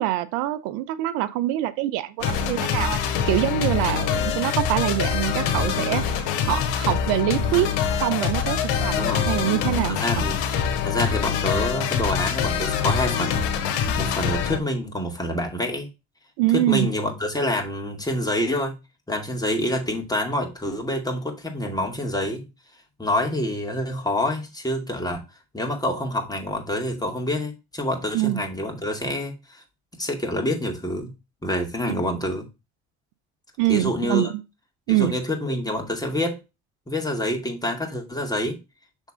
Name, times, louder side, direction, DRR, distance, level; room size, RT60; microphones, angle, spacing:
voice 1, 0.0-6.0 6.4-7.7 8.0-10.3 16.4-16.9 28.1-28.4 33.6-34.4 34.9-35.1, right 15 dB, 80° right, 0.7 m, -24 dB
sound 1, 2.2-14.6, left 7 dB, 90° left, 1.2 m, -24 dB
voice 2, 5.4-5.8 9.0-9.3 9.9-10.5 10.8-13.4 13.9-15.9 16.5-18.8 19.1-22.5 23.0-25.2 25.5-29.6 29.9-31.1 31.4-32.5 33.7-34.3 35.0-36.4 36.9-38.6, left 1 dB, 10° left, 2.3 m, -27 dB
6.5 x 3.7 x 4.9 m
supercardioid pair, 75°, 31 cm